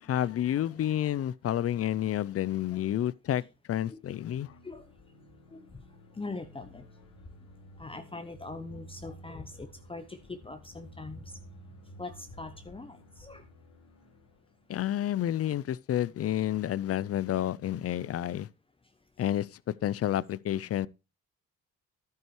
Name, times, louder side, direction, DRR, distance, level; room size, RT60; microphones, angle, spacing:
voice 1, 0.0-3.4 3.7-4.5 14.7-18.5 19.2-19.5 19.8-20.9, left 11 dB, 50° left, 0.5 m, -30 dB
sound 1, 4.2-14.9, equal, 85° left, 4.3 m, -53 dB
voice 2, 6.2-6.8 7.8-11.3 12.0-13.4, left 3 dB, 20° left, 0.9 m, -42 dB
11.5 x 9.3 x 3.1 m
cardioid pair, 90°, 30 cm